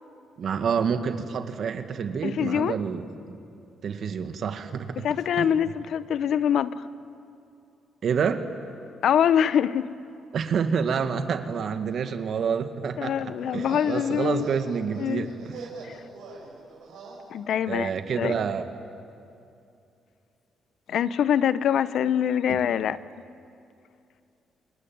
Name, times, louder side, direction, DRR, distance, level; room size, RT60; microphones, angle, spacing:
voice 1, 0.4-3.0 3.3-3.4 3.8-5.0 5.4-5.5 8.0-8.5 10.3-15.7 17.7-18.7 22.5-22.6, right 6 dB, 60° right, 8 dB, 2.0 m, -28 dB
voice 2, 2.2-2.8 5.0-6.8 9.0-9.9 13.0-14.5 15.0-15.3 15.8-16.0 17.3-17.9 18.2-18.3 20.9-23.0, left 9 dB, 70° left, 16 dB, 0.8 m, -24 dB
sound 1, 13.4-17.2, right 4 dB, 85° right, 7.3 m, -42 dB
28.0 x 22.5 x 9.4 m, 2.6 s
cardioid pair, 90°, 0 cm